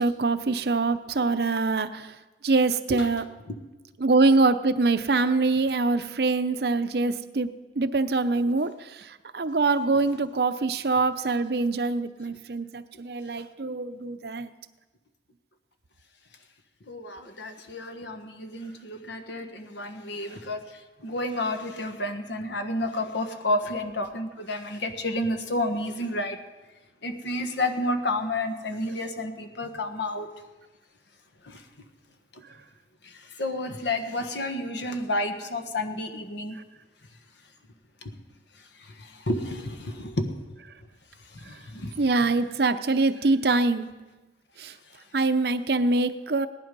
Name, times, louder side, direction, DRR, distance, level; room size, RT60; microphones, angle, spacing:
voice 1, 0.0-2.1 2.4-3.2 4.0-7.5 7.8-14.5 42.0-43.9 44.6-44.7 45.1-46.5, right 3 dB, 60° right, 12 dB, 0.6 m, -24 dB
voice 2, 16.9-26.4 27.0-30.3 31.4-31.6 32.3-32.4 33.0-36.6 38.8-40.3 41.3-42.0, left 1 dB, 80° left, 7 dB, 1.4 m, -31 dB
18.0 x 11.5 x 5.3 m, 1.2 s
head